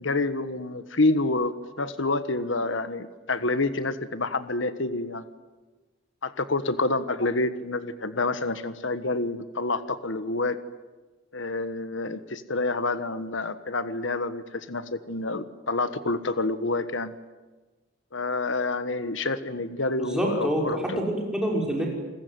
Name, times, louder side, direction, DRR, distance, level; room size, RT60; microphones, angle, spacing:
voice 1, 0.0-5.2 6.2-10.6 11.3-17.2 18.1-21.0, left 2 dB, 70° left, 12 dB, 1.4 m, -28 dB
voice 2, 20.0-21.9, equal, 5° right, -1 dB, 6.1 m, -27 dB
29.0 x 21.0 x 9.5 m, 1.2 s
head